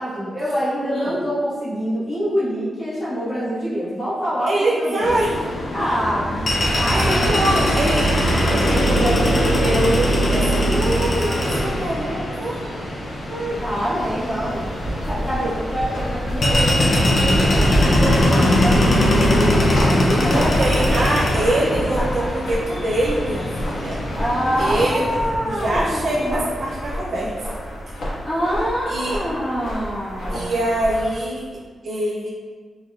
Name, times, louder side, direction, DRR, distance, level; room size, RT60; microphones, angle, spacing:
voice 1, 0.0-5.1 5.7-7.5 13.3-20.5 20.9-21.0 21.5-22.2 24.2-26.5 28.2-30.6, equal, 25° left, -13 dB, 1.4 m, -26 dB
voice 2, 4.4-5.3 6.9-12.6 20.2-24.0 24.6-25.1 25.5-27.6 28.9-29.2 30.3-32.3, right 1 dB, 50° right, -4 dB, 0.4 m, -24 dB
sound 1, 5.0-24.9, equal, 40° left, 0.4 m, -21 dB
sound 2, 11.3-20.9, right 1 dB, 90° right, 0.8 m, -38 dB
sound 3, 13.5-31.1, equal, 70° left, 1.2 m, -29 dB
3.9 x 3.0 x 2.3 m, 1.5 s
wide cardioid pair, 160°, 0 cm